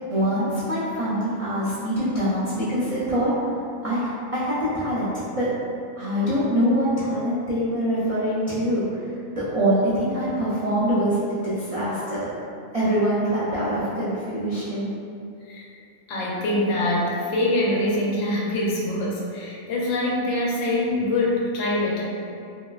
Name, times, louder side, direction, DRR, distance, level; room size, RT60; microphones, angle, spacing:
voice 1, 0.1-5.5 6.0-12.3 12.7-14.9, equal, 60° right, -11 dB, 0.3 m, -24 dB
voice 2, 16.1-22.0, left 1 dB, 80° left, -5 dB, 1.0 m, -24 dB
3.1 x 2.7 x 2.2 m, 2.5 s
omnidirectional pair, 1.4 m